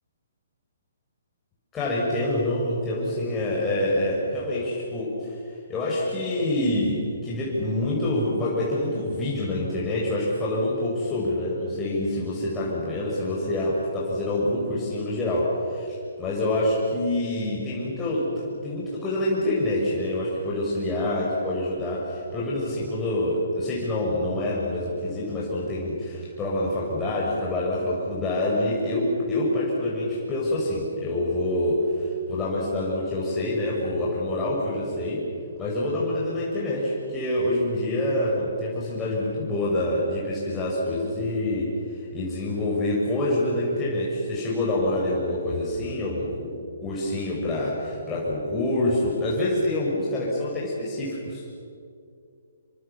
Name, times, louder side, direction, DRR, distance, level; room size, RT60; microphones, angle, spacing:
voice 1, 1.7-35.2 35.6-46.6 46.8-51.4, left 1 dB, 15° left, -6 dB, 6.6 m, -26 dB
27.5 x 24.5 x 7.2 m, 2.4 s
figure-of-eight pair, 135°, 0 cm